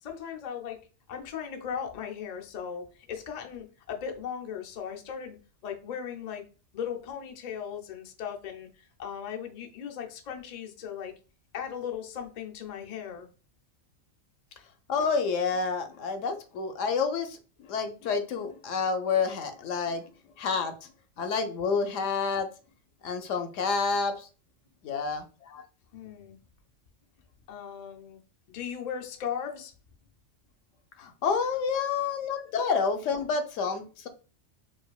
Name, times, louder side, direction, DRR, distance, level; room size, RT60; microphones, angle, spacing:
voice 1, 0.0-0.8 1.1-5.4 5.6-6.4 6.7-11.2 11.5-13.3 25.4-25.6 25.9-26.4 27.5-28.2 28.5-29.7 32.3-32.5, left 8 dB, 55° left, 0.4 m, -37 dB
voice 2, 14.9-20.1 20.4-20.9 21.2-22.5 23.0-24.3 24.8-25.2 31.0-34.1, left 5 dB, 80° left, 1.0 m, -29 dB
4.8 x 2.5 x 2.3 m
omnidirectional pair, 1.3 m